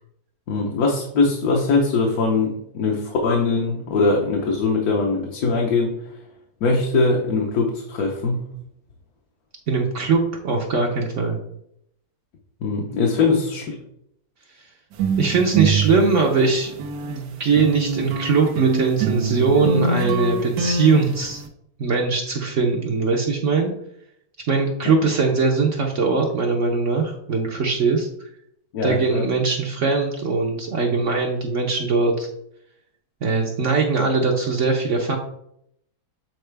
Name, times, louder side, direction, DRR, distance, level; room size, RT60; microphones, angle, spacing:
voice 1, 0.5-6.0 6.6-8.4 12.6-13.7 28.7-29.3, left 3 dB, 70° left, 0 dB, 1.4 m, -21 dB
voice 2, 9.7-11.4 13.3-13.4 15.2-16.7 17.1-21.4 21.8-23.7 24.5-28.1 28.8-32.3 33.2-35.2, right 4 dB, 55° right, 2 dB, 0.9 m, -21 dB
sound 1, 14.9-17.2 17.6-21.5, right 4 dB, 90° right, 1.4 m, -24 dB
7.8 x 4.2 x 3.3 m, 0.74 s
omnidirectional pair, 1.7 m